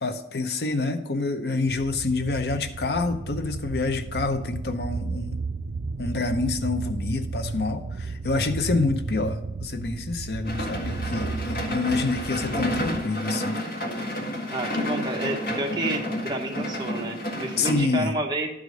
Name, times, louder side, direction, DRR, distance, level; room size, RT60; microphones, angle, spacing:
voice 1, 0.0-5.4 6.0-13.5 17.6-18.1, left 3 dB, 70° left, 8 dB, 0.7 m, -27 dB
sound 1, 1.7-13.1, right 3 dB, 60° right, 0.4 m, -33 dB
sound 2, 10.4-17.7, left 1 dB, 50° left, 1.7 m, -30 dB
voice 2, 14.5-18.5, right 1 dB, 25° right, 1 dB, 1.1 m, -30 dB
11.5 x 4.9 x 5.2 m, 0.90 s
head